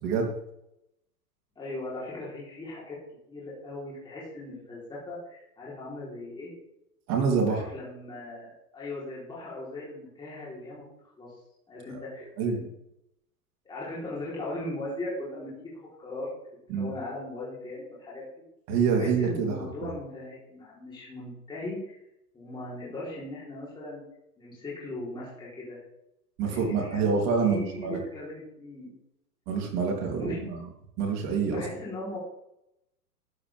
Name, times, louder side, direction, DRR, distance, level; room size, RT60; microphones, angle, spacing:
voice 1, 1.6-3.0 3.3-6.5 7.5-10.8 11.2-11.3 11.7-12.7 13.7-16.3 16.7-18.4 18.9-22.0 22.3-24.0 24.4-25.8 26.4-27.0 27.4-28.9 30.1-30.4 31.5-32.2, left 2 dB, 10° left, -7 dB, 3.9 m, -38 dB
voice 2, 7.1-7.6 12.4-12.6 16.7-16.9 18.7-19.5 19.8-19.9 26.4-28.0 29.5-30.6 31.0-31.6, right 5 dB, 35° right, 0 dB, 3.4 m, -26 dB
12.5 x 10.5 x 3.6 m, 0.82 s
hypercardioid pair, 140°, 47 cm